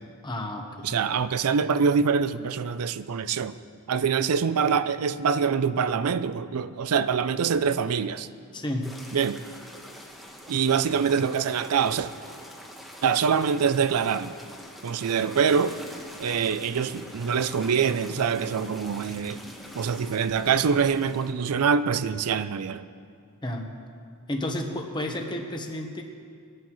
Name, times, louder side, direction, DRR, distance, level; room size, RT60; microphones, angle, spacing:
voice 1, 0.2-1.0 8.5-8.9 23.4-23.7 24.3-26.0, left 1 dB, 20° left, 1.1 m, -31 dB
voice 2, 0.8-3.6 3.9-8.3 9.1-9.4 10.5-12.1 13.0-14.3 14.8-15.8 16.2-19.4 19.7-22.9, right 6 dB, 80° right, 0.4 m, -24 dB
sound 1, 8.8-21.3, equal, ahead, 1.2 m, -44 dB
20.5 x 11.0 x 3.1 m
head